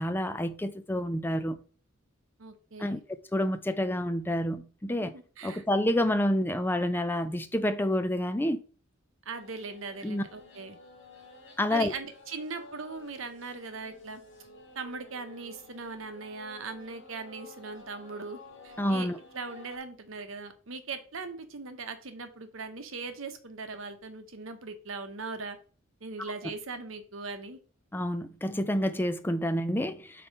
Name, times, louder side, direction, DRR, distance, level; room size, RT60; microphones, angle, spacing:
voice 1, 0.0-1.6 2.8-3.0 3.3-5.1 5.4-8.6 10.0-10.2 11.6-11.9 18.8-19.2 27.9-30.3, left 1 dB, 10° left, 0.5 m, -28 dB
voice 2, 2.4-3.0 4.9-5.6 9.3-10.8 11.7-14.2 14.7-19.1 19.3-25.6 26.0-27.6, right 4 dB, 65° right, 1.0 m, -40 dB
sound 1, 9.3-19.8, left 2 dB, 60° left, 2.1 m, -52 dB
5.4 x 4.2 x 5.3 m
head